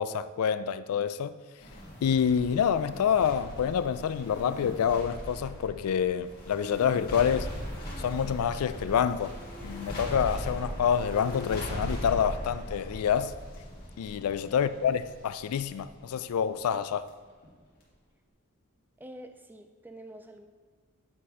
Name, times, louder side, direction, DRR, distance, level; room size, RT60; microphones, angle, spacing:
voice 1, 0.0-1.3 2.0-7.5 8.0-9.3 9.6-13.3 14.0-17.1, left 8 dB, 80° left, 0.3 m, -27 dB
sound 1, 1.6-17.1 17.4-17.5, equal, 40° left, 1.8 m, -39 dB
voice 2, 19.0-20.5, right 1 dB, 10° right, 0.3 m, -47 dB
7.7 x 4.2 x 4.7 m
head